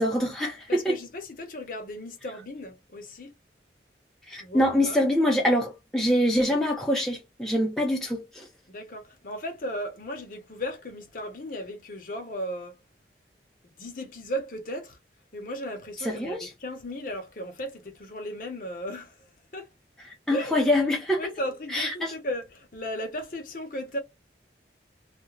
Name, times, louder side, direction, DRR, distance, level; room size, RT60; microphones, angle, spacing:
voice 1, 0.0-1.0 4.3-8.4 16.1-16.5 20.3-21.2 21.7-22.1, left 1 dB, 5° left, 0.4 m, -24 dB
voice 2, 0.7-3.3 4.3-5.0 8.7-12.8 13.8-15.0 15.3-19.2 19.5-19.7 20.3-20.6 21.2-24.0, equal, 50° left, 0.7 m, -35 dB
2.4 x 2.1 x 2.9 m
head